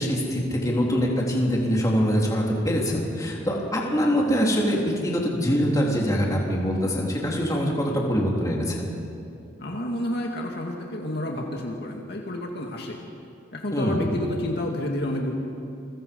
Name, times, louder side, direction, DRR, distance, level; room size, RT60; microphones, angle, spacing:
voice 1, 0.0-8.9 13.7-14.1, equal, 20° left, -2 dB, 3.6 m, -24 dB
voice 2, 9.6-13.0 13.5-15.3, left 1 dB, 55° left, 0 dB, 2.3 m, -30 dB
29.0 x 22.5 x 5.5 m, 2.6 s
head